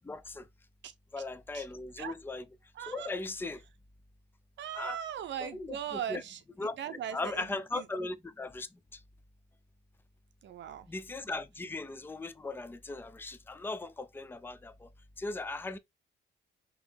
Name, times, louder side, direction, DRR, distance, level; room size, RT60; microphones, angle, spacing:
voice 1, 0.0-0.4 1.1-2.4 2.9-3.6 4.7-5.0 5.5-6.2 6.6-6.8 7.1-8.7 10.9-14.9 15.2-15.8, left 3 dB, 10° left, 0.5 m, -38 dB
voice 2, 2.7-3.1 4.6-6.4 6.8-7.9 10.4-10.9, right 9 dB, 65° right, 0.7 m, -39 dB
3.7 x 3.0 x 3.4 m
cardioid pair, 90°, 20 cm